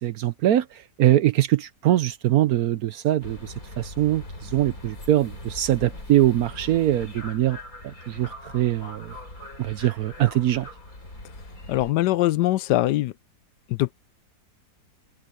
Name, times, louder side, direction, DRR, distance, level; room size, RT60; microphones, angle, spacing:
voice 1, 0.0-7.6 7.8-9.1 9.6-10.7, right 13 dB, 70° right, 1.1 m, -23 dB
sound 1, 3.2-11.9, left 1 dB, 55° left, 6.9 m, -41 dB
voice 2, 11.7-13.1 13.7-13.9, left 15 dB, 85° left, 1.2 m, -22 dB
omnidirectional pair, 1.8 m